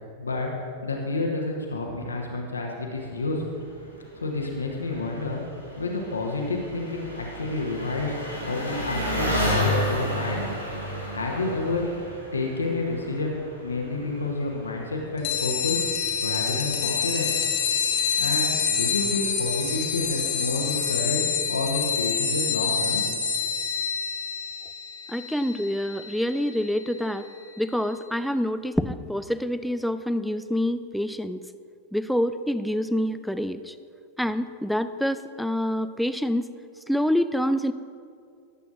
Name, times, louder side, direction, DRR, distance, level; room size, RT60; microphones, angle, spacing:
voice 1, 0.2-0.5 0.8-3.4 4.2-5.4 5.8-8.2 8.4-10.4 11.1-11.8 12.3-17.3 18.2-21.2 21.5-23.2, left 3 dB, 75° left, 0 dB, 1.1 m, -29 dB
Engine, 3.0-21.1, left 1 dB, 85° right, 1.7 m, -34 dB
sound 1, 15.2-27.3, left 7 dB, 50° left, 1.0 m, -27 dB
voice 2, 25.1-27.3 27.6-31.4 31.9-33.7 34.2-36.5 36.9-37.7, equal, ahead, 11 dB, 0.4 m, -26 dB
18.0 x 8.2 x 2.6 m, 2.4 s
figure-of-eight pair, 90°, 0 cm